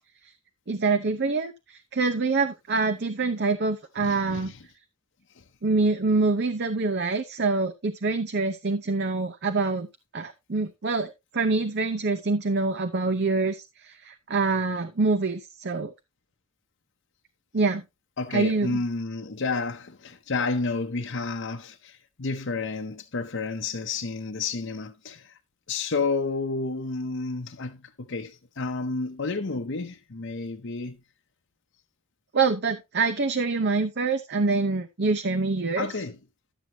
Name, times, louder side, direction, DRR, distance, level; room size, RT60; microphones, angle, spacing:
voice 1, 0.7-4.5 5.6-9.9 10.1-15.9 17.5-17.8 18.3-18.8 32.3-35.9, right 3 dB, 50° right, 0.7 m, -25 dB
voice 2, 4.0-4.6 5.4-5.5 18.2-25.4 25.7-31.0 35.8-36.2, left 3 dB, 55° left, 0.8 m, -31 dB
12.0 x 7.7 x 2.8 m
head